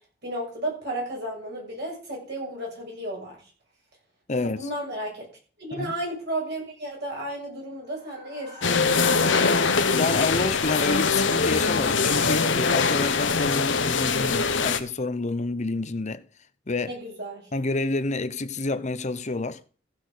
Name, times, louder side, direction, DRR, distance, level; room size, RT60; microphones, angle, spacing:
voice 1, 0.2-3.4 4.4-5.3 5.6-9.2 16.9-17.5, right 1 dB, 60° right, 7.0 m, -33 dB
voice 2, 4.3-4.7 5.7-6.0 10.0-16.2 16.7-17.0 17.5-19.6, left 3 dB, 40° left, 0.9 m, -28 dB
sound 1, 8.0-12.5, equal, 35° right, 2.7 m, -39 dB
sound 2, 8.6-14.8, left 4 dB, 75° left, 1.1 m, -23 dB
15.0 x 6.0 x 6.5 m
head